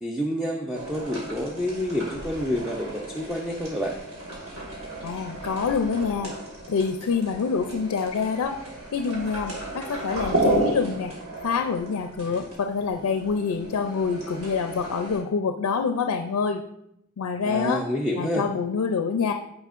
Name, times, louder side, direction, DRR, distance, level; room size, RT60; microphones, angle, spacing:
voice 1, 0.0-4.0 17.4-18.4, equal, 5° right, -1 dB, 0.4 m, -28 dB
sound 1, 0.7-15.2, right 1 dB, 90° right, 2.1 m, -33 dB
voice 2, 5.0-6.3 6.7-8.6 8.9-11.1 11.4-16.6 17.2-17.8 18.2-19.3, left 5 dB, 85° left, 6 dB, 0.4 m, -26 dB
9.1 x 5.0 x 2.5 m, 0.80 s
head